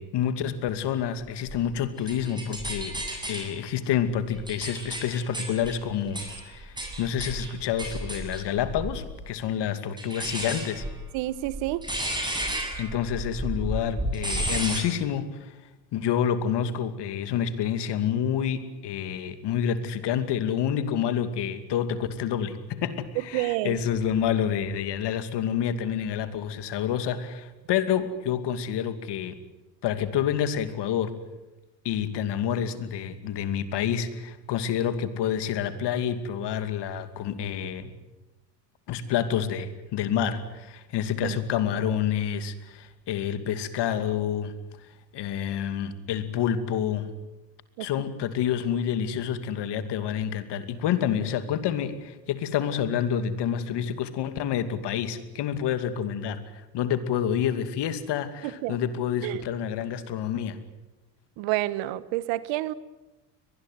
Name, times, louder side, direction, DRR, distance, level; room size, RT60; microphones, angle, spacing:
voice 1, 0.0-3.0 3.3-10.8 12.8-15.5 15.9-29.3 29.8-31.1 31.8-37.9 38.9-44.5 45.1-47.1 47.8-60.6, left 9 dB, 60° left, 10 dB, 2.6 m, -28 dB
sound 1, 1.5-3.5 4.1-9.2 10.0-14.8, right 1 dB, 10° right, 8.0 m, -33 dB
voice 2, 11.1-11.9 23.1-23.8 41.2-41.4 47.8-47.9 58.4-58.8 59.2-59.4 61.4-62.7, right 17 dB, 70° right, 17 dB, 1.3 m, -29 dB
23.0 x 20.0 x 9.4 m, 1.1 s
supercardioid pair, 85°, 47 cm